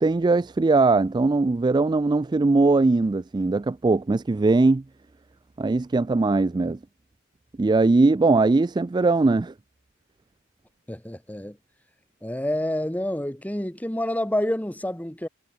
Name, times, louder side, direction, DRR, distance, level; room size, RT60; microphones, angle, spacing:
voice 1, 0.0-4.8 5.6-6.8 7.6-9.5, right 3 dB, 20° right, 0.3 m, -20 dB
voice 2, 10.9-11.6 12.2-15.3, left 1 dB, 10° left, 1.6 m, -28 dB
head